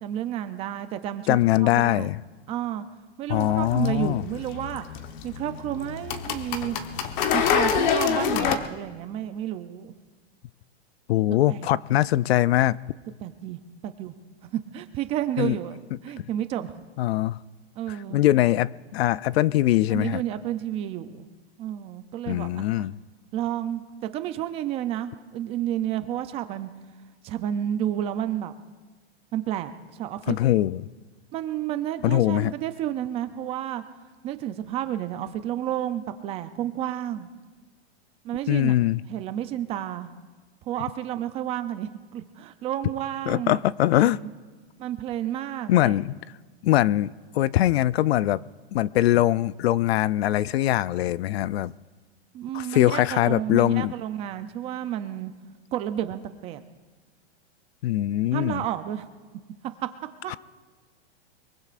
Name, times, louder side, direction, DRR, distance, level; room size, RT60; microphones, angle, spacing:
voice 1, 0.0-2.1 2.5-2.8 3.2-4.9 5.2-6.8 7.3-9.9 11.5-11.7 13.2-14.1 14.5-16.7 17.8-18.2 19.9-21.3 21.6-22.7 23.3-26.7 27.2-28.5 29.3-30.4 31.3-33.8 34.2-37.3 38.2-38.8 39.1-40.1 40.7-43.6 43.9-44.3 44.8-46.0 52.3-55.3 55.7-56.6 58.3-59.1 60.2-60.3, right 11 dB, 20° right, 10 dB, 0.4 m, -31 dB
voice 2, 1.3-2.2 3.3-4.2 11.1-12.8 15.4-15.6 17.0-17.4 17.9-20.2 22.3-22.9 30.3-30.8 32.0-32.5 38.5-39.0 43.3-44.2 45.7-46.1 46.6-48.4 48.7-51.7 52.5-53.9 57.8-58.6 60.3-60.4, left 14 dB, 70° left, 20 dB, 0.5 m, -22 dB
sound 1, 3.3-8.6, left 7 dB, 45° left, 1.2 m, -27 dB
23.0 x 23.0 x 2.5 m, 1.4 s
supercardioid pair, 150°, 32 cm